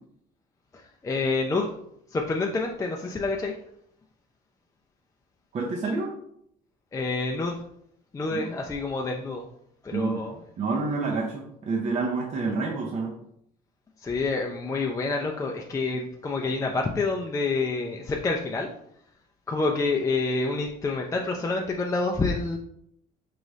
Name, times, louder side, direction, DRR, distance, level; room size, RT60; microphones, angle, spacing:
voice 1, 1.0-1.7 2.1-3.5 6.9-7.5 8.1-9.5 9.8-10.3 14.0-18.7 19.5-22.6, left 3 dB, 20° left, 1 dB, 0.4 m, -27 dB
voice 2, 5.5-6.1 8.3-8.4 9.9-10.2 10.6-13.2, right 3 dB, 45° right, -1 dB, 0.6 m, -28 dB
4.7 x 2.6 x 3.1 m, 0.72 s
cardioid pair, 110°, 17 cm